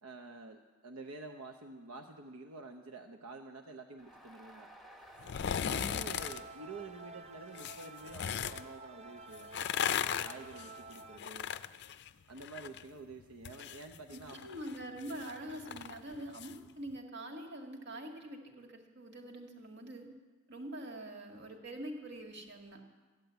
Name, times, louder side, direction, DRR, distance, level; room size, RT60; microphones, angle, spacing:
voice 1, 0.0-4.7 5.7-9.6 10.0-11.5 12.3-14.5, right 3 dB, 80° right, 4 dB, 0.9 m, -49 dB
Crowd, 4.0-9.2, right 1 dB, ahead, 1.1 m, -59 dB
sound 1, 5.2-6.4 7.5-8.6 9.4-12.8 13.1-16.5 16.9-17.0, left 8 dB, 50° left, 0.4 m, -37 dB
sound 2, 5.7-11.2, right 3 dB, 30° right, 0.5 m, -51 dB
voice 2, 14.1-20.1 20.5-22.8, right 1 dB, 55° right, 2 dB, 1.9 m, -45 dB
13.5 x 10.5 x 8.1 m, 1.3 s
head